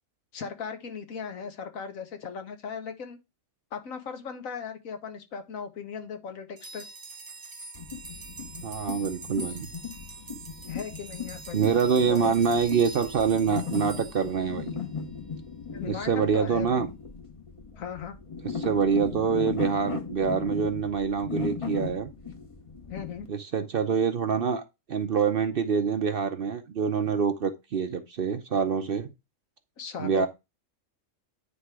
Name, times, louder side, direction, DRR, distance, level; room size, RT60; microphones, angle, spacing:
voice 1, 0.3-3.2 3.7-6.8 10.7-11.6 12.1-12.3 15.7-16.8 17.8-18.2 22.9-23.3 29.8-30.3, left 6 dB, 80° left, 1.5 m, -38 dB
sound 1, 6.6-15.1, right 3 dB, 35° right, 0.3 m, -45 dB
sound 2, 7.7-23.3, left 6 dB, 30° left, 0.8 m, -38 dB
voice 2, 8.6-9.7 11.5-14.8 15.9-16.9 18.5-22.1 23.3-24.6 24.9-29.1 30.0-30.3, right 6 dB, 50° right, 0.7 m, -26 dB
9.4 x 3.5 x 4.7 m
omnidirectional pair, 1.4 m